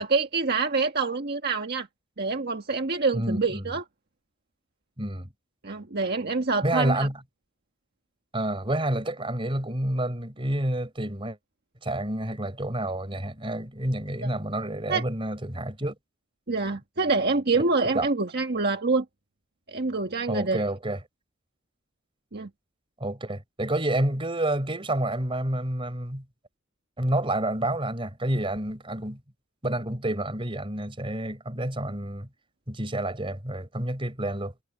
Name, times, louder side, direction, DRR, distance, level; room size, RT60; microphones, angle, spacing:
voice 1, 0.0-1.9 2.2-3.8 5.6-7.1 14.2-14.3 14.9-15.0 16.5-19.0 19.7-20.6 22.3-22.5, right 3 dB, 50° right, 1.5 m, -26 dB
voice 2, 3.1-3.7 5.0-5.3 6.6-7.2 8.3-11.4 11.8-16.0 17.8-18.1 20.3-21.0 23.0-26.2 27.0-29.2 29.6-32.3 32.7-34.5, right 1 dB, 25° right, 4.0 m, -29 dB
head